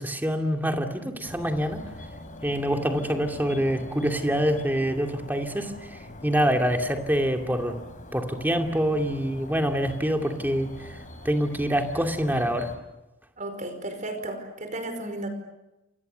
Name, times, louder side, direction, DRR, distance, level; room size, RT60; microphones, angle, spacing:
voice 1, 0.0-1.8 2.4-7.8 8.1-11.0 11.2-12.7, equal, 10° right, 3 dB, 2.5 m, -26 dB
sound 1, 1.2-12.8, left 1 dB, 40° left, 4.3 m, -43 dB
voice 2, 13.4-15.3, right 1 dB, 40° right, 7 dB, 5.0 m, -34 dB
29.0 x 27.5 x 6.9 m, 0.95 s
head